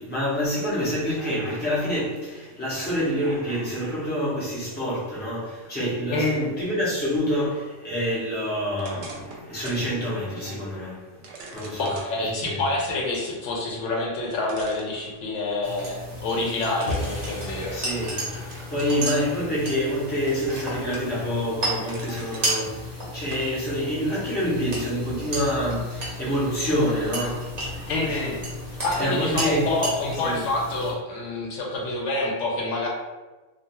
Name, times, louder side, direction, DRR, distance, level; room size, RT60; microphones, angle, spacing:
voice 1, 0.0-11.2 11.5-11.9 12.2-12.6 17.7-28.2 29.0-29.7 30.2-30.4, equal, 10° left, -8 dB, 0.6 m, -27 dB
voice 2, 6.1-6.5 11.8-17.7 27.9-28.4 28.8-32.9, left 2 dB, 75° left, -2 dB, 0.9 m, -27 dB
sound 1, 8.8-9.9 10.3-10.4 11.2-12.1 13.9-14.0 14.4-15.5 16.8-18.0 18.5-19.0 19.5-20.2 20.5-21.2 21.6-22.6 23.3-23.5, right 3 dB, 75° right, 0.9 m, -43 dB
sound 2, 15.6-30.9, right 1 dB, 40° right, 0.8 m, -33 dB
sound 3, 16.9-23.2, left 2 dB, 55° left, 0.5 m, -39 dB
2.4 x 2.3 x 2.8 m, 1.2 s
omnidirectional pair, 1.2 m